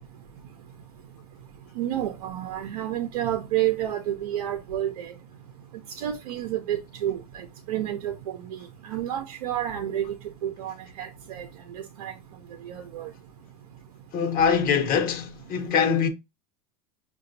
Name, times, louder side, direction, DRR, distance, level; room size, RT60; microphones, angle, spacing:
voice 1, 1.8-5.1 6.0-8.1 8.8-10.1 10.4-12.1 12.6-13.1, right 12 dB, 80° right, 0.6 m, -30 dB
voice 2, 14.1-16.1, left 6 dB, 50° left, 1.0 m, -23 dB
5.7 x 2.3 x 2.6 m
hypercardioid pair, 95°, 19 cm